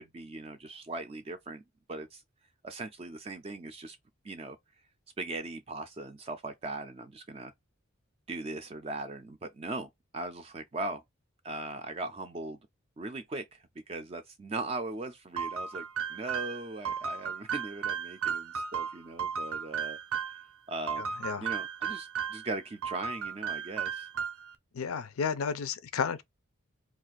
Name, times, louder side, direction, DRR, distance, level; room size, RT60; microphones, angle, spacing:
voice 1, 0.0-1.6 1.9-2.2 2.6-4.0 4.2-4.6 5.2-7.5 8.3-11.0 11.4-12.6 13.0-15.8 16.1-20.0 20.7-21.0 21.4-24.1, right 2 dB, 25° right, 0.3 m, -39 dB
sound 1, 15.4-20.4 20.9-22.5 22.8-24.5, right 7 dB, 80° right, 0.5 m, -35 dB
voice 2, 21.0-21.5 24.7-26.2, left 6 dB, 80° left, 0.4 m, -32 dB
2.4 x 2.4 x 3.9 m
head